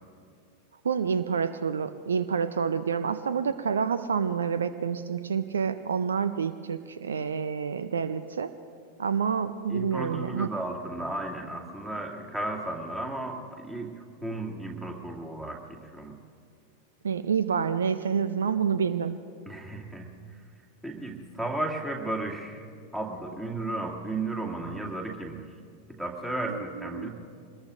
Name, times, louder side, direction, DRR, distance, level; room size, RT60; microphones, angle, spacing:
voice 1, 0.8-8.5 9.0-10.5 17.0-19.2 26.5-27.1, right 6 dB, 70° right, 13 dB, 0.5 m, -28 dB
voice 2, 9.7-16.2 19.5-20.1 20.8-22.7 22.9-25.4 25.9-27.1, right 2 dB, 10° right, -1 dB, 2.3 m, -34 dB
24.5 x 20.5 x 2.6 m, 2.3 s
figure-of-eight pair, 90°, 0 cm